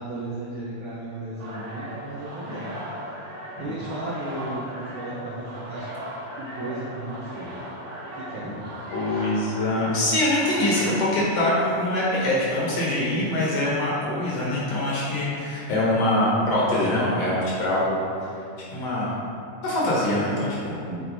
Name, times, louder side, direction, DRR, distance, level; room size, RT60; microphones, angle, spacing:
voice 1, 0.0-2.7 3.6-5.9 6.4-7.5 8.1-8.7 9.1-9.3 20.9-21.0, right 1 dB, 80° right, -7 dB, 1.1 m, -35 dB
sound 1, 1.4-11.9, equal, 45° right, 1.5 m, -38 dB
voice 2, 8.9-18.0 18.7-19.1 19.6-20.8, left 1 dB, 60° left, -6 dB, 2.0 m, -24 dB
8.0 x 4.5 x 4.0 m, 2.6 s
omnidirectional pair, 3.8 m